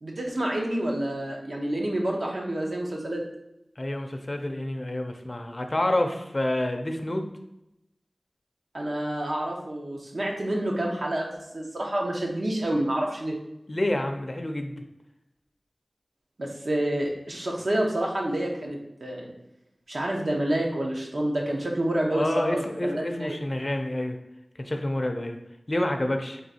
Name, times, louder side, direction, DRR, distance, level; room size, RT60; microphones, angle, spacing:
voice 1, 0.0-3.2 8.7-13.3 16.4-19.3 19.9-23.3, right 1 dB, 75° right, 0 dB, 0.8 m, -28 dB
voice 2, 3.8-7.3 13.7-14.8 22.1-24.2 24.6-25.4 25.7-26.4, left 1 dB, 40° left, 4 dB, 0.4 m, -28 dB
3.7 x 2.7 x 4.1 m, 0.89 s
wide cardioid pair, 60°, 0 cm